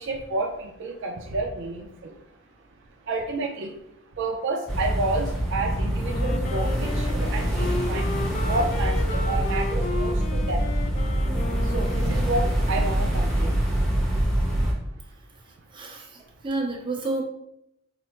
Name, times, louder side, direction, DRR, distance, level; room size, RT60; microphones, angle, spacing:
voice 1, 0.0-13.8 14.5-15.0 15.3-15.8 16.2-16.5, right 2 dB, 65° right, 1 dB, 0.5 m, -31 dB
sound 1, 4.7-14.7, right 1 dB, ahead, 0.9 m, -25 dB
Wind instrument woodwind instrument, 6.0-12.7, left 3 dB, 35° left, 0.3 m, -34 dB
voice 2, 15.7-16.2 16.4-17.2, right 2 dB, 25° right, -2 dB, 0.9 m, -29 dB
4.8 x 2.1 x 4.3 m, 0.79 s
head